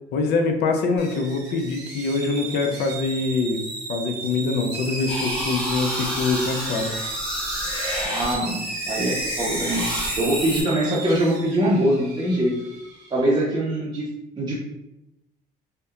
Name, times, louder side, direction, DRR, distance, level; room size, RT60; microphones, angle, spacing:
voice 1, 0.1-3.6 3.9-7.0, left 3 dB, 75° left, 4 dB, 0.5 m, -24 dB
kettle short, 1.0-13.2, right 3 dB, 85° right, 0.9 m, -35 dB
sound 1, 5.1-8.3 8.6-10.6, equal, 5° left, 1.1 m, -29 dB
voice 2, 8.0-9.8 10.1-12.5 13.1-14.1 14.3-14.7, right 1 dB, 25° right, -6 dB, 0.5 m, -23 dB
2.7 x 2.1 x 2.3 m, 0.88 s
cardioid pair, 110°, 17 cm